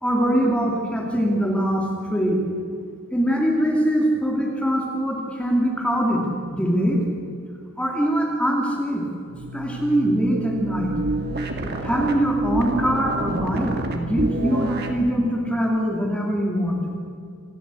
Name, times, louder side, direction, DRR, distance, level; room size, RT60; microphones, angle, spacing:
voice 1, 0.0-2.4 3.1-7.0 7.8-9.1 9.5-10.9 11.8-16.8, equal, 5° left, 0 dB, 2.6 m, -22 dB
sound 1, 9.3-15.0, right 2 dB, 50° right, 2.4 m, -28 dB
27.0 x 13.5 x 8.4 m, 2.4 s
head